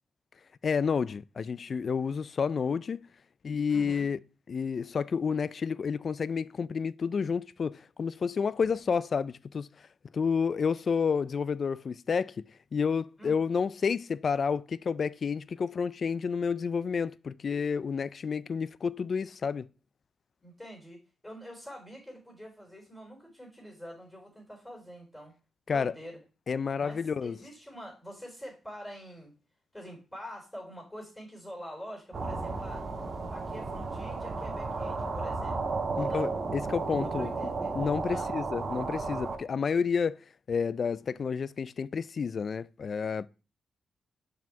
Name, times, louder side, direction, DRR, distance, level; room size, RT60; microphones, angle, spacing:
voice 1, 0.6-3.1 3.4-4.2 4.5-9.7 10.1-19.7 25.7-25.9 26.5-27.4 36.0-37.3 37.7-40.2 40.5-43.3, left 6 dB, 50° left, 0.3 m, -30 dB
voice 2, 3.7-4.1 13.2-13.4 20.4-25.3 25.7-26.2 26.8-29.3 29.7-32.8 33.3-35.6 35.9-36.3 37.2-37.7 38.1-38.3, equal, 10° left, 3.7 m, -45 dB
sound 1, 32.1-39.4, right 3 dB, 45° right, 1.5 m, -33 dB
5.7 x 4.9 x 4.6 m
cardioid pair, 100°, 0 cm